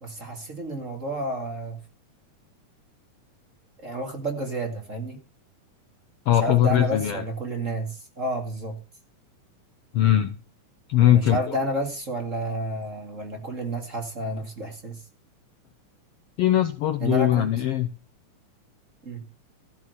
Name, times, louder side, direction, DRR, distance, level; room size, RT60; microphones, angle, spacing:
voice 1, 0.0-1.8 3.8-5.2 6.3-8.8 11.1-15.0 17.0-17.5 19.0-19.2, right 1 dB, 25° right, 2.3 m, -30 dB
voice 2, 6.3-7.2 9.9-10.4 10.9-11.4 16.4-17.9, left 11 dB, 70° left, 1.5 m, -20 dB
14.0 x 6.0 x 8.0 m
omnidirectional pair, 3.5 m